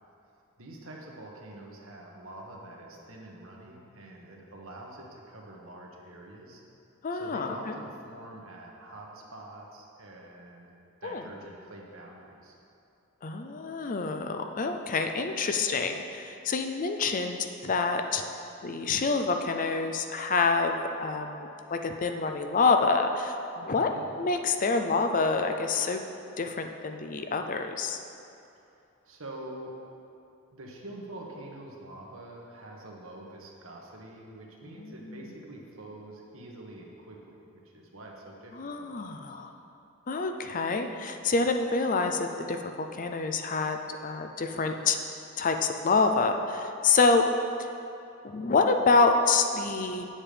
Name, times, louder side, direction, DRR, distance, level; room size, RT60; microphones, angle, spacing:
voice 1, 0.6-6.6 7.1-10.7 11.0-12.5 23.8-24.1 29.0-29.7 30.5-39.3, right 1 dB, 65° right, -1 dB, 1.5 m, -46 dB
voice 2, 7.0-7.8 11.0-11.2 13.2-18.2 18.6-23.9 24.2-26.0 26.4-28.0 34.7-35.2 38.5-39.5 40.1-45.0 45.4-47.3 48.2-50.1, left 4 dB, 40° left, 5 dB, 0.5 m, -27 dB
9.0 x 7.3 x 5.1 m, 2.7 s
head